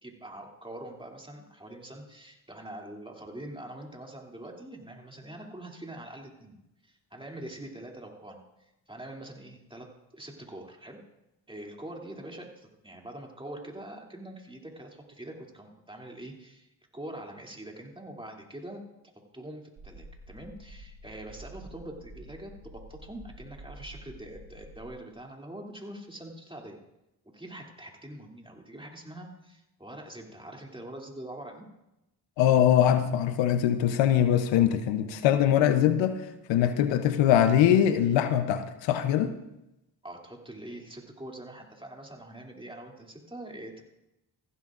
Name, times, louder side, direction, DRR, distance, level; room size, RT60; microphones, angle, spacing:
voice 1, 0.0-6.6 6.8-9.9 10.1-11.0 11.5-16.7 16.9-18.8 19.3-26.8 27.3-31.7 40.0-43.8, right 1 dB, 10° right, 0 dB, 2.7 m, -44 dB
sound 1, 19.8-24.9, right 1 dB, 65° right, 1.9 m, -48 dB
voice 2, 32.4-36.2 36.5-39.3, left 10 dB, 85° left, 10 dB, 0.8 m, -22 dB
15.0 x 12.5 x 2.5 m, 0.90 s
supercardioid pair, 50°, 43 cm